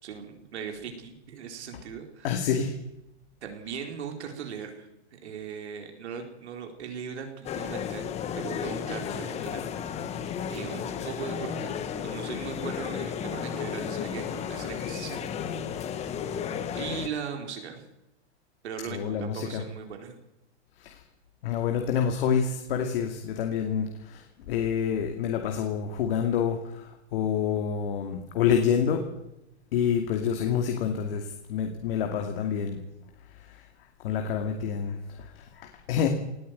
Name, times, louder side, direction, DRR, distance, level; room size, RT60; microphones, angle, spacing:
voice 1, 0.0-2.5 3.4-8.1 8.4-9.6 10.5-15.2 15.7-15.8 16.7-17.9 18.6-20.1, right 7 dB, 75° right, 4 dB, 4.5 m, -39 dB
voice 2, 2.2-2.7 18.9-19.6 20.8-21.0 21.4-29.0 29.7-32.8 33.3-33.6 34.0-36.1, left 7 dB, 55° left, 4 dB, 2.5 m, -28 dB
sound 1, 7.4-17.1, left 8 dB, 20° left, 1.2 m, -33 dB
18.5 x 15.0 x 9.4 m, 0.88 s
hypercardioid pair, 150°, 34 cm